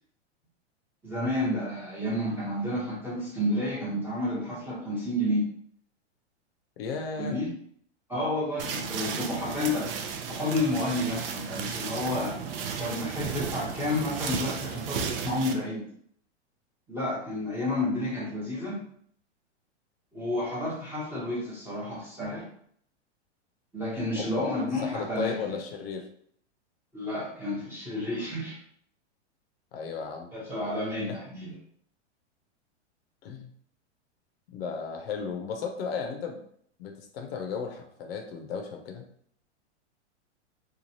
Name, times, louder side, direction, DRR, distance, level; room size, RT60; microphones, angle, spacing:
voice 1, 1.0-5.5 7.2-7.5 8.1-12.4 12.8-15.8 16.9-18.8 20.1-22.5 23.7-25.6 26.9-28.6 30.3-31.5, left 1 dB, 5° right, -6 dB, 0.7 m, -30 dB
voice 2, 6.8-7.4 24.2-24.5 24.8-26.1 29.7-30.3 31.1-31.2 33.2-33.5 34.5-36.4 36.8-39.0, left 5 dB, 55° left, 3 dB, 0.7 m, -35 dB
sound 1, 8.6-15.5, right 6 dB, 55° right, 0.5 m, -34 dB
3.0 x 2.3 x 2.6 m, 0.62 s
hypercardioid pair, 140°, 35 cm